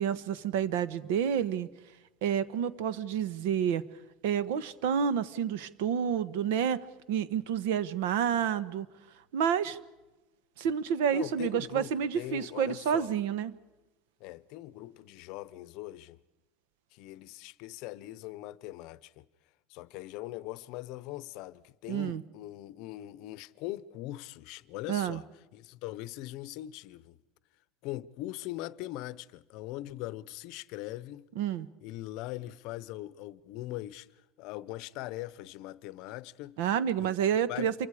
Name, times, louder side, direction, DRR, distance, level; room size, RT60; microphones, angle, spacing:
voice 1, 0.0-1.7 2.2-3.9 4.2-6.8 7.1-8.9 9.3-9.8 10.6-13.5 21.9-22.2 24.9-25.2 31.4-31.7 36.6-37.7, right 8 dB, 75° right, 1.2 m, -29 dB
voice 2, 11.1-13.1 14.2-16.2 16.9-19.2 19.7-25.2 25.5-27.2 27.8-31.3 31.8-34.1 34.4-36.6 37.0-37.1 37.5-37.7, left 16 dB, 50° left, 0.7 m, -41 dB
27.5 x 24.0 x 4.9 m
cardioid pair, 170°, 0 cm